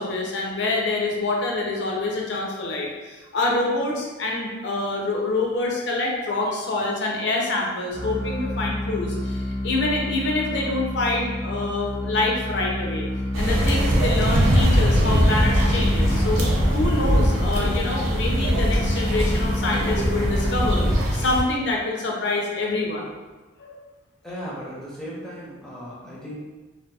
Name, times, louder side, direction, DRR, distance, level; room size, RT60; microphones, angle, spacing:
voice 1, 0.0-13.1 13.4-20.8 21.1-23.1 23.6-23.8, left 2 dB, 60° left, -1 dB, 0.5 m, -26 dB
sound 1, 7.9-21.3, left 1 dB, 45° right, 0.9 m, -30 dB
sound 2, 13.3-21.4, equal, 85° right, 0.5 m, -21 dB
voice 2, 24.2-26.4, equal, 5° left, -8 dB, 0.6 m, -36 dB
2.7 x 2.3 x 2.2 m, 1.2 s
head